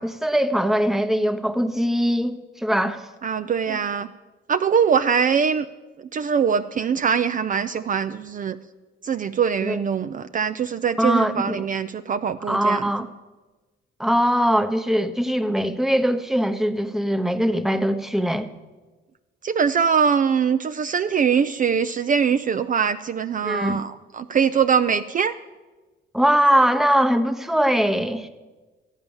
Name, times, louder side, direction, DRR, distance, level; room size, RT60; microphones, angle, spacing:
voice 1, 0.0-3.0 3.7-3.8 9.6-9.8 11.0-11.6 12.5-13.1 14.0-18.5 23.4-23.8 26.1-28.3, equal, ahead, 8 dB, 0.9 m, -21 dB
voice 2, 3.2-4.1 4.5-5.7 6.1-8.6 9.0-12.8 19.4-25.3, right 7 dB, 40° right, 10 dB, 0.5 m, -22 dB
13.0 x 9.0 x 7.1 m, 1.2 s
cardioid pair, 90°, 20 cm